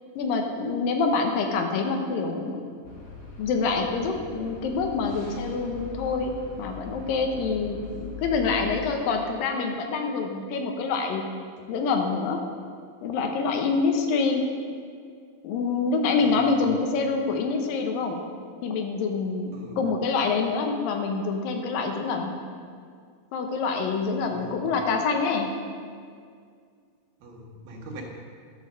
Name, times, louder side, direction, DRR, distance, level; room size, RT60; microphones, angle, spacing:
voice 1, 0.2-2.6 3.4-11.2 11.7-12.4 13.0-14.5 15.4-18.2 18.6-22.3 23.3-25.5, left 4 dB, 90° left, 4 dB, 2.7 m, -26 dB
sound 1, 2.8-8.9, left 4 dB, 65° left, 3.6 m, -41 dB
voice 2, 16.1-16.7 19.5-19.9 24.2-24.7 27.2-28.0, right 1 dB, 85° right, -1 dB, 3.3 m, -42 dB
11.5 x 6.3 x 6.6 m, 2.1 s
omnidirectional pair, 3.9 m